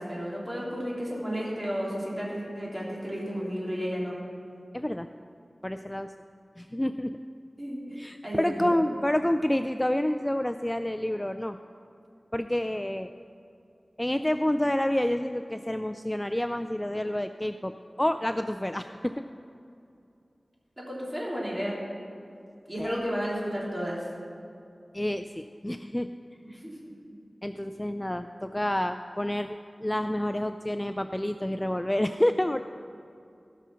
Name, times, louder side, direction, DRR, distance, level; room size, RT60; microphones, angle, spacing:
voice 1, 0.0-4.1 7.6-8.7 20.8-21.8 22.7-24.0 26.6-26.9, equal, 20° right, -5 dB, 3.3 m, -33 dB
voice 2, 4.7-5.1 5.6-6.1 6.6-7.1 8.0-11.6 12.3-13.1 14.0-19.3 22.8-23.0 24.9-26.1 26.5-26.6 27.4-32.6, left 1 dB, 15° left, 8 dB, 0.3 m, -28 dB
16.5 x 6.2 x 5.7 m, 2.6 s
wide cardioid pair, 65°, 0 cm